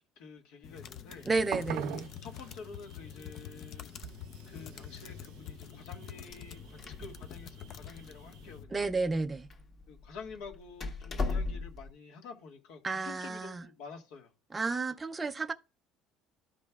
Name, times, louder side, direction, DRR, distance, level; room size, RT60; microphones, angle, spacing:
voice 1, 0.2-1.3 2.2-4.0 4.5-8.9 9.9-14.3, left 5 dB, 75° left, 1.6 m, -49 dB
sound 1, 0.6-8.6, left 9 dB, 45° left, 0.5 m, -47 dB
sound 2, 1.2-8.6, right 10 dB, 70° right, 0.6 m, -45 dB
voice 2, 1.3-2.1 8.7-9.5 12.8-13.6 14.5-15.5, right 3 dB, 15° right, 0.4 m, -32 dB
Door, 6.3-11.9, left 3 dB, 30° left, 1.3 m, -39 dB
13.5 x 5.2 x 2.3 m
cardioid pair, 145°, 0 cm